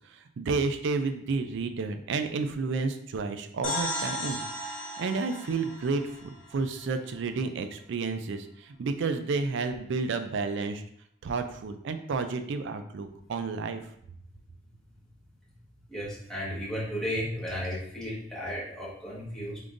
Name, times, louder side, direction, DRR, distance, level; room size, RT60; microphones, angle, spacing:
voice 1, 0.1-4.4 5.0-10.8 11.2-13.8, right 4 dB, 65° right, 8 dB, 0.4 m, -31 dB
sound 1, 3.6-7.3, left 1 dB, 75° left, 1.2 m, -36 dB
voice 2, 15.9-19.6, equal, 5° left, -8 dB, 1.4 m, -34 dB
3.7 x 3.6 x 2.5 m, 0.70 s
head